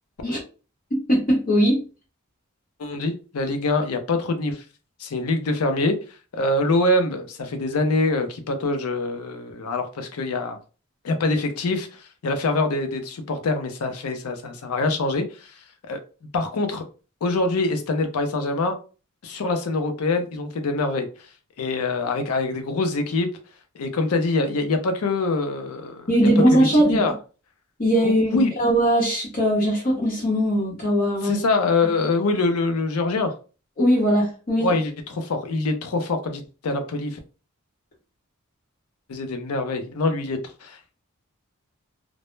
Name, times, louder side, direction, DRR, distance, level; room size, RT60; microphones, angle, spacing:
voice 1, 0.9-1.8 26.1-27.0 27.8-31.4 33.8-34.7, equal, 40° left, 0.8 m, -20 dB
voice 2, 2.8-4.6 5.0-6.0 6.3-10.6 11.0-15.6 15.8-16.0 16.3-16.8 17.2-18.7 19.2-21.1 21.6-23.3 23.8-27.1 28.0-28.5 31.2-33.3 34.6-37.2 39.1-40.8, left 2 dB, 75° left, 0.5 m, -24 dB
2.0 x 2.0 x 3.0 m
head